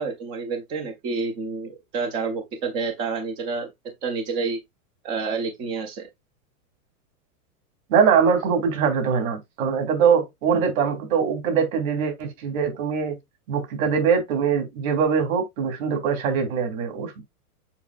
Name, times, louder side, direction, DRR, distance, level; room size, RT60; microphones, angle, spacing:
voice 1, 0.0-3.7 4.0-4.6 5.0-6.1, right 4 dB, 10° right, 0.3 m, -29 dB
voice 2, 7.9-13.2 13.5-17.2, right 6 dB, 65° right, 3.3 m, -22 dB
7.1 x 5.3 x 2.5 m
supercardioid pair, 150°, 44 cm